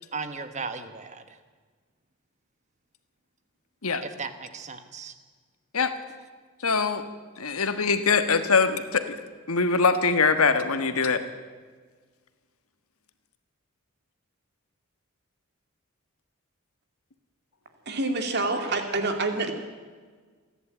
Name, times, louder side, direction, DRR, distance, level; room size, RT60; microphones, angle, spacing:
voice 1, 0.1-1.4 4.0-5.1, right 4 dB, 35° right, 9 dB, 1.3 m, -36 dB
voice 2, 6.6-7.0 7.4-9.2 9.5-11.2, left 4 dB, 85° left, 9 dB, 1.5 m, -23 dB
voice 3, 17.9-19.5, right 2 dB, 50° right, 5 dB, 2.4 m, -27 dB
27.5 x 11.0 x 8.8 m, 1.5 s
head